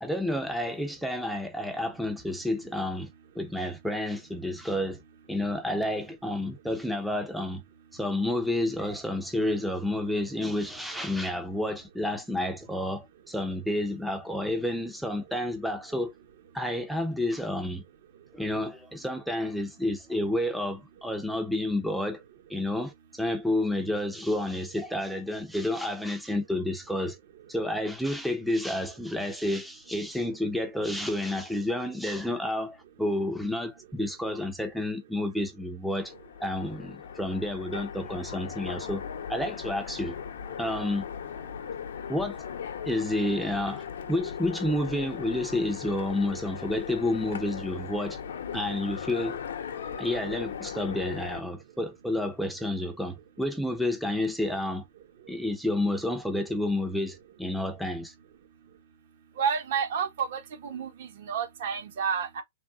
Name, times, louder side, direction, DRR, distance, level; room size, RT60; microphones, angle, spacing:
voice 1, 0.0-3.1 3.4-5.0 5.3-7.6 7.9-16.1 16.5-17.8 18.3-22.2 22.5-27.2 27.5-36.1 36.4-39.0 39.3-40.2 40.6-41.1 42.1-42.4 42.9-48.2 48.5-49.4 50.0-54.8 55.3-58.1, left 1 dB, ahead, 0.5 m, -30 dB
Train, 36.0-51.4, left 7 dB, 70° left, 0.7 m, -38 dB
voice 2, 59.4-62.4, right 7 dB, 55° right, 1.0 m, -30 dB
3.4 x 2.3 x 2.3 m
hypercardioid pair, 135°, 0 cm